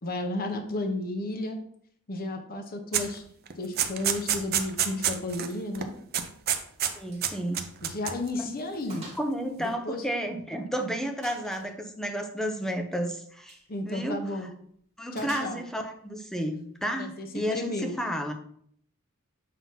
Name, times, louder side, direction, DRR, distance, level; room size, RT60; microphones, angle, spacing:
voice 1, 0.0-1.6 2.1-3.2 3.6-5.9 7.8-9.1 9.6-10.0 13.7-14.5 15.1-15.6 16.9-18.0, left 2 dB, 45° left, 5 dB, 0.9 m, -33 dB
sound 1, 2.9-3.1 3.5-5.5 5.7-5.9 6.1-6.9 7.2-8.3, right 9 dB, 45° right, 0.6 m, -28 dB
voice 2, 6.9-7.6 8.4-8.5 9.2-13.6 13.8-14.2 15.0-18.3, equal, ahead, 4 dB, 0.7 m, -32 dB
Gunshot gunfire, 7.1-7.3 7.6-7.8 8.2-8.3 8.9-9.3 9.6-10.6 11.2-11.7 13.4-13.7 15.2-15.9, right 2 dB, 30° right, 1.8 m, -47 dB
7.4 x 2.9 x 5.5 m, 0.65 s
head